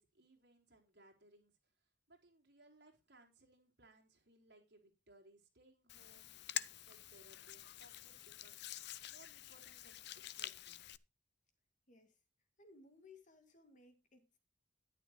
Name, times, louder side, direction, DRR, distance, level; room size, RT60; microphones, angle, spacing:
voice 1, 0.0-11.0, right 2 dB, 60° right, -1 dB, 4.6 m, -66 dB
Hands, 5.9-11.0, left 13 dB, 60° left, 0.6 m, -47 dB
voice 2, 11.9-12.2 12.6-14.4, left 3 dB, 45° left, 6 dB, 2.2 m, -62 dB
13.0 x 11.0 x 3.0 m, 0.27 s
head